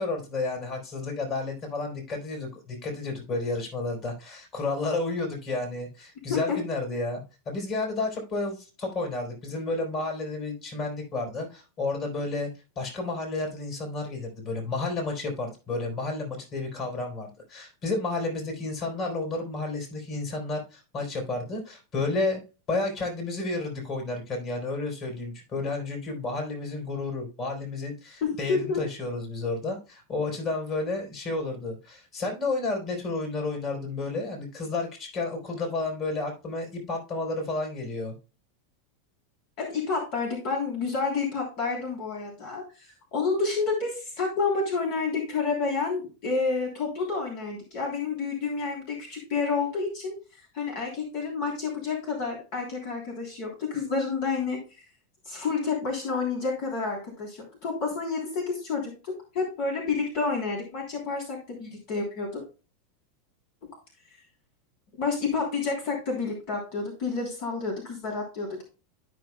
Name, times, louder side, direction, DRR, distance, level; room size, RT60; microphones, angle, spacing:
voice 1, 0.0-12.5 12.8-22.4 22.7-38.1, left 3 dB, 35° left, 2 dB, 4.1 m, -31 dB
voice 2, 28.2-28.8 39.6-54.6 55.2-62.4 65.0-68.6, left 4 dB, 60° left, -1 dB, 3.2 m, -29 dB
13.0 x 6.1 x 2.2 m, 0.32 s
supercardioid pair, 125°, 0 cm